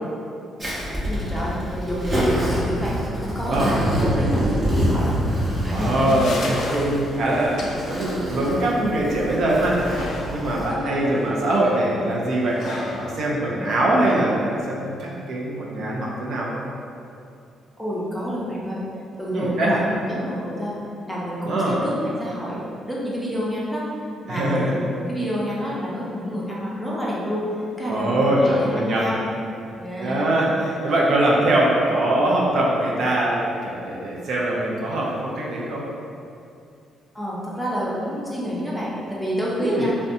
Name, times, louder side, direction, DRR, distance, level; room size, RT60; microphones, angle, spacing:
Zipper (clothing), 0.6-10.7, equal, 35° right, 0.7 m, -26 dB
voice 1, 1.1-5.2 5.6-6.2 10.7-11.1 17.8-18.8 19.2-20.7 21.0-23.8 24.2-27.4 27.8-29.2 29.8-30.5 37.1-39.9, equal, 5° left, -7 dB, 0.6 m, -28 dB
voice 2, 3.5-4.5 5.7-16.6 19.3-19.8 21.4-21.8 24.3-24.7 27.9-29.1 30.0-35.8 39.6-39.9, right 1 dB, 70° right, -4 dB, 0.4 m, -22 dB
sound 1, 5.9-14.6, left 2 dB, 65° left, 0.3 m, -37 dB
2.5 x 2.1 x 2.6 m, 2.5 s
cardioid pair, 90°, 0 cm